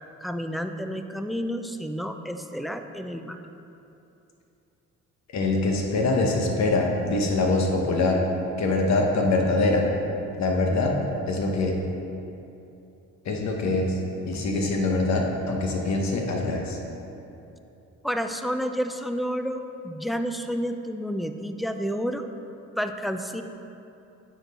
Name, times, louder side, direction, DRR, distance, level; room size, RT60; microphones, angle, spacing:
voice 1, 0.2-3.4 18.0-22.2 22.8-23.4, equal, ahead, 7 dB, 0.3 m, -30 dB
voice 2, 5.3-8.2 8.6-9.9 10.4-11.0 11.3-11.8 13.2-14.0 14.3-16.8, left 2 dB, 65° left, 1 dB, 1.1 m, -24 dB
8.9 x 4.5 x 4.2 m, 2.8 s
cardioid pair, 90°, 30 cm